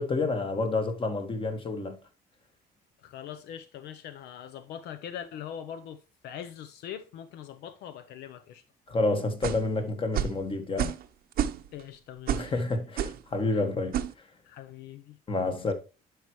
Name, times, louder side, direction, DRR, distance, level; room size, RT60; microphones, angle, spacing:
voice 1, 0.0-2.0 8.9-10.9 12.3-14.0 15.3-15.7, left 3 dB, 30° left, 1.6 m, -29 dB
voice 2, 3.0-8.6 11.7-12.6 13.5-13.7 14.4-15.2, left 9 dB, 80° left, 0.6 m, -42 dB
sound 1, 9.4-9.7 10.1-10.4 10.8-11.1 11.3-11.8 12.3-12.5 13.0-13.2 13.9-14.1, right 10 dB, 60° right, 0.7 m, -29 dB
11.0 x 4.8 x 3.1 m
cardioid pair, 110°, 17 cm